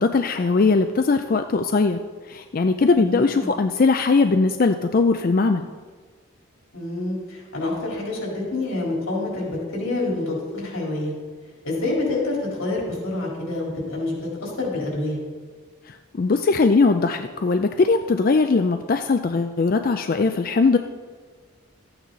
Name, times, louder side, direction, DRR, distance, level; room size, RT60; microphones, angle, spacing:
voice 1, 0.0-2.0 2.3-5.7 15.9-20.8, left 4 dB, 45° left, 7 dB, 0.4 m, -20 dB
voice 2, 2.9-3.5 6.7-11.1 11.6-15.2, left 2 dB, 90° left, -3 dB, 4.0 m, -27 dB
13.0 x 8.8 x 4.0 m, 1.5 s
head